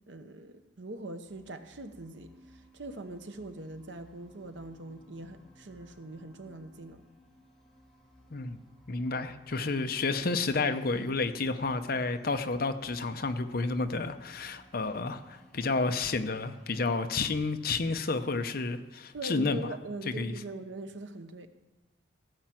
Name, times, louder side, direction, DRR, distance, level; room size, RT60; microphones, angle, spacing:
voice 1, 0.1-7.0 19.1-21.5, right 2 dB, 85° right, 8 dB, 1.0 m, -42 dB
sound 1, 1.3-16.7, equal, 5° left, 1.9 m, -58 dB
voice 2, 8.9-19.7 20.2-20.3, left 3 dB, 55° left, 8 dB, 0.7 m, -30 dB
16.0 x 5.8 x 7.6 m, 1.1 s
head